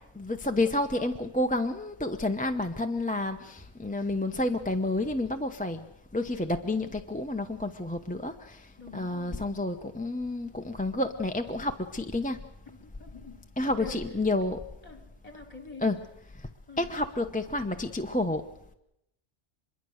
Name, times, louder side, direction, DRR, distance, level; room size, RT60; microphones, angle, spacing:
voice 1, 0.1-5.9 6.1-12.4 13.6-14.6 15.8-16.0 16.3-16.5 16.8-18.5, left 2 dB, 10° left, 5 dB, 0.8 m, -30 dB
voice 2, 8.8-9.4 12.7-13.4 13.8-14.0 14.8-15.9 16.7-16.9, left 3 dB, 35° left, 5 dB, 3.5 m, -46 dB
25.0 x 22.5 x 6.5 m, 0.80 s
omnidirectional pair, 1.1 m